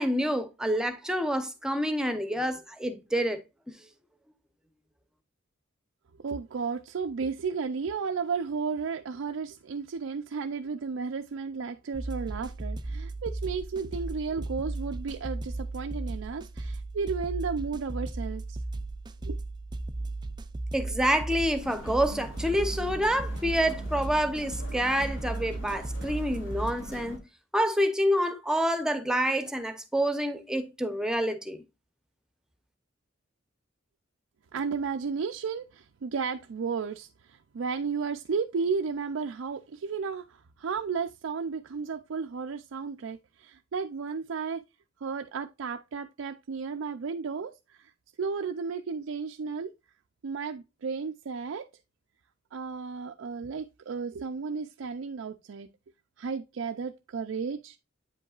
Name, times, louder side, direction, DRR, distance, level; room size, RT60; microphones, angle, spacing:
voice 1, 0.0-3.4 20.7-27.2 27.5-31.6, equal, 5° right, 0.8 m, -27 dB
voice 2, 6.2-18.6 19.2-19.4 34.5-44.6 45.0-47.9 48.2-49.7 50.2-51.7 52.5-55.7 56.2-57.8, right 5 dB, 80° right, 0.4 m, -33 dB
sound 1, 11.9-26.7, right 2 dB, 20° right, 0.4 m, -36 dB
sound 2, 21.6-27.2, equal, 75° left, 2.0 m, -43 dB
8.4 x 5.3 x 2.4 m
head